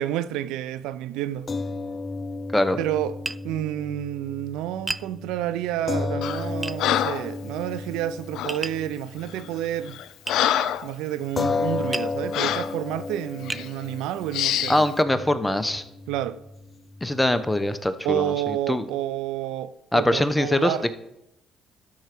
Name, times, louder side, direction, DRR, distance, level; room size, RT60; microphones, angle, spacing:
voice 1, 0.0-1.5 2.8-3.2 3.4-10.0 10.8-14.9 16.1-16.4 18.0-20.9, right 12 dB, 85° right, 0.4 m, -29 dB
sound 1, 1.5-10.0 10.3-10.5 11.4-17.9, left 3 dB, 35° left, 0.6 m, -33 dB
Tap, 3.2-3.5 4.9-5.1 6.6-6.8 8.5-8.8 10.3-10.4 11.9-12.2 12.9-13.0 13.5-13.7, right 2 dB, 20° right, 0.3 m, -31 dB
Breathing, 6.2-6.5 6.8-7.3 8.3-8.6 9.3-9.5 9.9-10.9 11.4-11.5 12.3-12.7 13.5-13.7 14.3-14.8, left 11 dB, 75° left, 0.5 m, -26 dB
voice 2, 14.7-15.8 17.0-18.3 18.7-18.8 19.9-20.9, left 1 dB, 10° left, 0.9 m, -22 dB
12.5 x 4.7 x 6.0 m
supercardioid pair, 80°, 0 cm